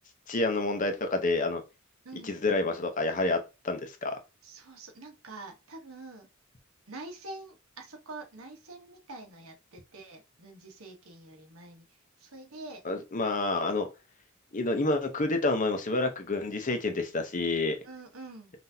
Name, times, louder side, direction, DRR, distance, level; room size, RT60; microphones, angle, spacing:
voice 1, 0.3-1.6 2.2-3.4 3.6-4.1 12.8-13.9 14.5-17.8, left 2 dB, 35° left, 0.7 m, -28 dB
voice 2, 2.0-2.3 4.4-6.3 6.9-12.8 17.8-18.5, right 2 dB, 70° right, 1.1 m, -46 dB
5.7 x 2.6 x 2.7 m
head